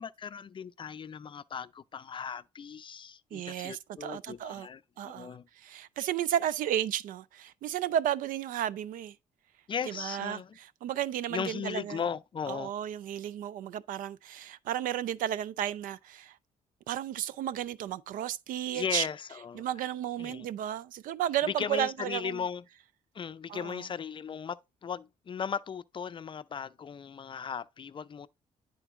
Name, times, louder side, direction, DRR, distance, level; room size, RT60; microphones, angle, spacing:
voice 1, 0.0-5.5 9.7-10.6 11.3-12.7 18.7-19.7 20.2-20.5 21.4-22.6 23.1-28.3, left 7 dB, 35° left, 0.4 m, -37 dB
voice 2, 3.3-4.7 5.0-9.2 9.9-12.0 12.5-16.4 16.9-19.1 19.5-22.4 23.5-23.9, right 11 dB, 75° right, 0.4 m, -33 dB
10.0 x 3.9 x 3.5 m
cardioid pair, 85°, 14 cm